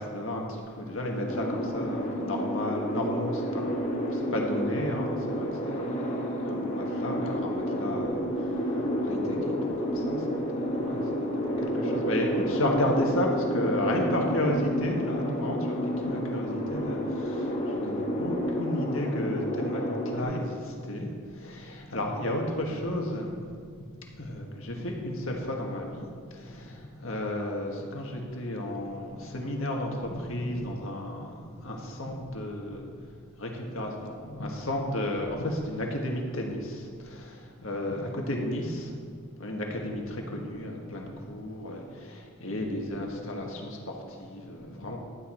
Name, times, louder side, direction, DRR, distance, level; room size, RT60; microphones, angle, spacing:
voice 1, 0.0-3.6 4.1-23.4 24.2-26.0 26.3-33.0 33.4-38.9 39.4-45.0, left 1 dB, 65° left, 1 dB, 1.6 m, -33 dB
sound 1, 1.3-20.2, equal, 30° left, 1.2 m, -30 dB
12.0 x 8.6 x 4.4 m, 2.1 s
head